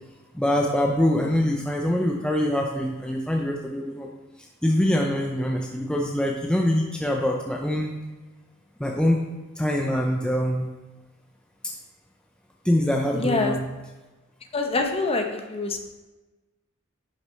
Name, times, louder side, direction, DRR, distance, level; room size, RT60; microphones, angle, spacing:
voice 1, 0.3-4.1 4.6-7.9 8.8-9.2 9.6-10.7 12.6-13.6, left 1 dB, 5° left, 0 dB, 0.5 m, -24 dB
voice 2, 13.1-13.5 14.5-15.8, left 3 dB, 30° left, 4 dB, 0.8 m, -26 dB
9.9 x 6.5 x 3.1 m, 1.1 s
head